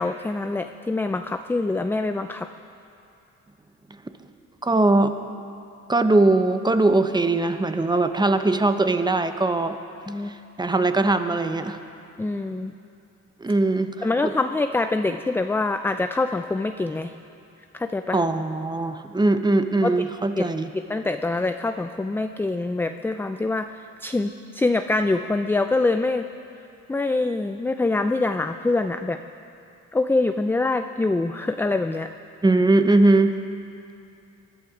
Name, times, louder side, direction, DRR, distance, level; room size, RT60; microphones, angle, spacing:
voice 1, 0.0-2.5 10.1-10.3 12.2-12.7 14.0-17.1 17.7-18.2 19.8-20.0 20.4-20.5 20.7-26.3 26.9-29.2 29.9-32.1, left 2 dB, 5° left, 8 dB, 0.4 m, -25 dB
voice 2, 4.6-5.1 5.9-9.8 10.3-11.8 13.4-14.3 18.1-20.7 32.4-33.3, right 2 dB, 15° right, 8 dB, 0.8 m, -21 dB
21.0 x 11.5 x 4.9 m, 2.6 s
cardioid pair, 90°, 30 cm